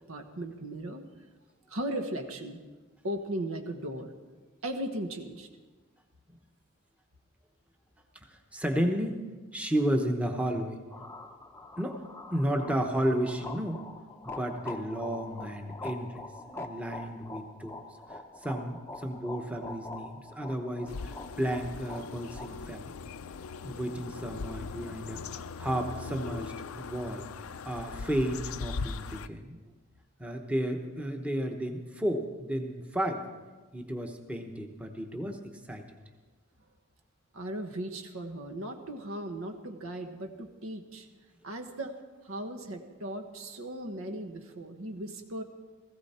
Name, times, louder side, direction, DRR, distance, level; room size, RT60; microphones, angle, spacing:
voice 1, 0.1-1.0 1.7-2.6 3.0-4.2 4.6-5.5 37.3-41.1 41.4-42.0 42.2-45.4, right 1 dB, 75° right, 6 dB, 1.3 m, -37 dB
voice 2, 8.3-9.2 9.5-10.8 11.8-12.0 12.3-13.9 14.2-16.2 16.5-17.8 18.1-22.9 23.6-27.3 27.6-29.6 30.2-33.2 33.7-35.4 35.7-35.8, equal, 5° right, 4 dB, 1.0 m, -32 dB
sound 1, 10.9-22.5, left 2 dB, 10° left, 0.6 m, -44 dB
sound 2, 20.9-29.3, left 4 dB, 85° left, 0.5 m, -40 dB
17.0 x 15.5 x 4.3 m, 1.3 s
head